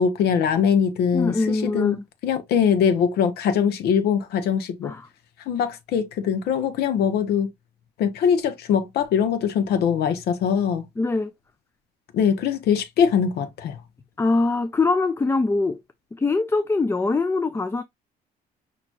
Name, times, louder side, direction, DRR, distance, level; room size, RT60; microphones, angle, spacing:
voice 1, 0.0-2.0 2.2-4.9 5.5-7.5 8.0-10.8 12.1-13.8, left 7 dB, 75° left, 1.0 m, -22 dB
voice 2, 1.1-2.0 4.8-5.1 11.0-11.3 14.2-15.8 16.2-17.8, left 3 dB, 15° left, 0.4 m, -23 dB
6.0 x 3.0 x 2.5 m
cardioid pair, 110°, 17 cm